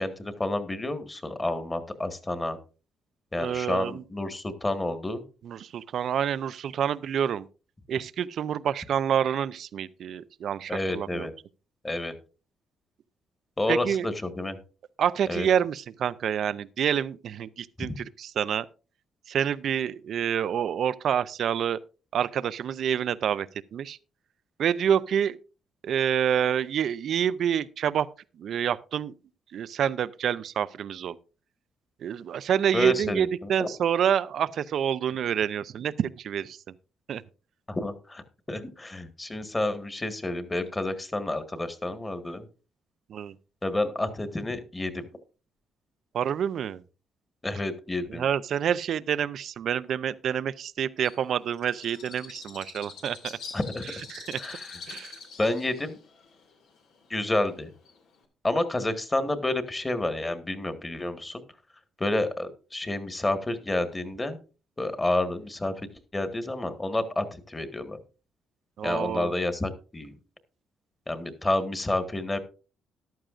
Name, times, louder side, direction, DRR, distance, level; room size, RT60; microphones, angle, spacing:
voice 1, 0.0-2.6 3.3-5.2 10.7-11.3 11.8-12.1 13.6-14.6 15.3-15.5 17.9-18.0 32.7-33.7 37.7-38.2 38.5-42.4 43.6-45.1 47.4-48.3 53.5-53.8 54.4-54.8 55.4-56.0 57.1-57.7 58.4-61.4 62.0-64.4 64.8-68.0 68.8-70.1 71.1-72.4, left 2 dB, 20° left, 1.6 m, -29 dB
voice 2, 3.4-4.0 5.4-7.5 7.9-11.3 13.7-14.1 15.0-18.7 19.3-21.8 22.1-24.0 24.6-25.4 25.8-28.1 28.4-29.1 29.5-31.2 32.0-36.8 37.1-37.2 43.1-43.4 46.1-46.8 48.1-53.4 54.1-54.4 54.9-55.2 68.8-69.3, right 9 dB, 65° right, 0.5 m, -27 dB
Bird, 51.0-58.2, left 5 dB, 90° left, 2.4 m, -45 dB
14.0 x 11.5 x 2.5 m
cardioid pair, 90°, 0 cm